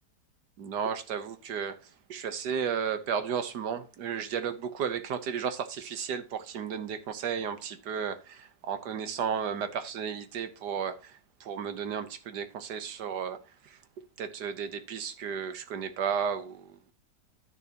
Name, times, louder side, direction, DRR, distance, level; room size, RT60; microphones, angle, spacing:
voice 1, 0.6-1.8 2.1-13.8 14.2-16.8, right 7 dB, 80° right, 1.7 m, -33 dB
10.5 x 10.0 x 3.0 m
omnidirectional pair, 1.8 m